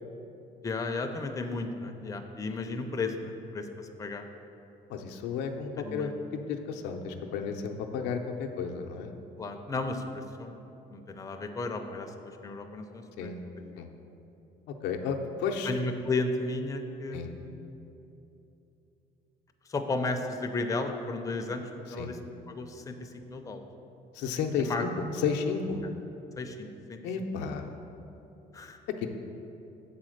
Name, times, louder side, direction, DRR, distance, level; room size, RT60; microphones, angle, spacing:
voice 1, 0.6-4.3 5.8-6.2 9.4-10.6 10.9-13.3 13.6-13.8 15.6-17.9 19.7-22.2 22.5-23.7 24.6-24.8 26.4-27.0 27.3-27.5 28.5-28.8, left 3 dB, 20° left, 5 dB, 0.5 m, -34 dB
voice 2, 4.9-6.1 6.5-9.1 13.2-13.4 13.8-13.9 14.8-15.7 17.1-17.3 22.0-22.1 24.1-25.8 27.0-27.8 29.0-29.1, left 6 dB, 90° left, 4 dB, 0.6 m, -32 dB
7.2 x 4.2 x 6.4 m, 2.9 s
cardioid pair, 110°, 17 cm